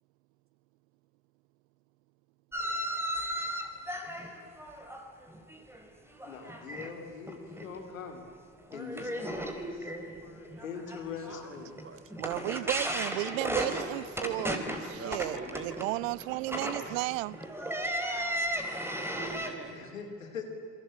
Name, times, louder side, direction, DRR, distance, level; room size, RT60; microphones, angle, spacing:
sound 1, 2.5-5.9 6.1-6.9 7.3-7.7 8.1-8.2 8.7-19.5, equal, 5° right, 4.7 m, -35 dB
voice 1, 6.2-8.2 8.7-11.8 14.6-14.8 15.4-15.5 19.7-20.5, left 6 dB, 90° left, 3.0 m, -43 dB
voice 2, 12.2-14.6 14.9-17.4, right 21 dB, 80° right, 0.5 m, -34 dB
voice 3, 14.8-15.8 16.8-16.9 17.5-17.9 18.9-19.8, right 4 dB, 35° right, 3.4 m, -45 dB
28.5 x 23.0 x 8.6 m
hypercardioid pair, 55°, 39 cm